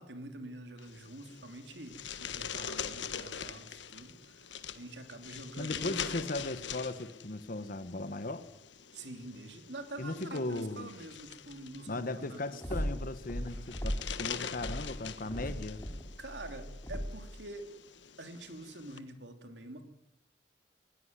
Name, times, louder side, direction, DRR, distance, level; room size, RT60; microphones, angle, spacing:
voice 1, 0.0-6.2 8.9-12.6 13.8-14.0 16.2-17.7 18.2-19.9, right 2 dB, 75° right, 7 dB, 3.1 m, -46 dB
sound 1, 0.8-19.0, left 7 dB, 85° left, 1.4 m, -44 dB
voice 2, 5.6-8.4 10.0-10.9 11.9-15.9, left 2 dB, 50° left, 11 dB, 1.2 m, -37 dB
sound 2, 12.6-14.2 14.5-17.3, equal, 15° left, 3.1 m, -38 dB
20.0 x 16.5 x 9.8 m, 0.87 s
head